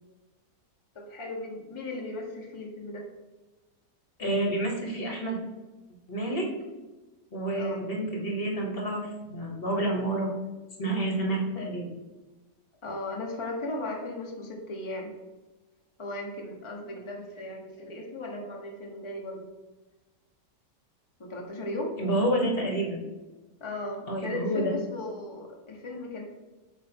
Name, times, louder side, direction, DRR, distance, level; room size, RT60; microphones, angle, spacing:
voice 1, 0.9-3.0 7.6-7.8 12.8-15.1 16.0-19.5 21.2-21.9 23.6-26.3, left 2 dB, 20° left, 0 dB, 1.0 m, -36 dB
voice 2, 4.2-5.4 6.1-6.5 7.3-10.3 10.8-11.9 22.0-23.0 24.1-24.7, right 1 dB, 35° left, 0 dB, 1.4 m, -29 dB
7.8 x 3.0 x 6.1 m, 1.2 s
omnidirectional pair, 1.8 m